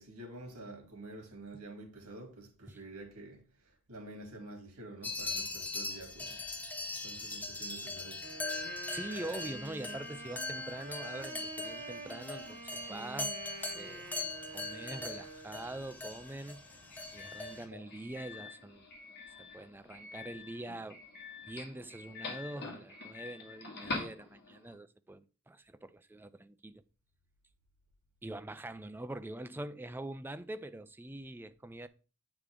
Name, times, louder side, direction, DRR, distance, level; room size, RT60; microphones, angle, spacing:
voice 1, 0.0-6.5 7.0-8.3 8.8-8.9 15.7-15.9, right 2 dB, 80° right, 2.8 m, -49 dB
sound 1, 5.0-17.7, left 2 dB, 5° left, 0.7 m, -41 dB
Wind instrument woodwind instrument, 8.2-15.8, right 3 dB, 35° right, 1.3 m, -48 dB
voice 2, 8.9-13.3 13.7-14.1 14.5-16.6 17.1-18.9 19.4-21.0 21.4-26.8 28.2-31.9, right 1 dB, 10° right, 0.3 m, -44 dB
Doorbell, 15.7-24.7, left 3 dB, 45° left, 1.7 m, -46 dB
8.2 x 5.0 x 3.7 m
head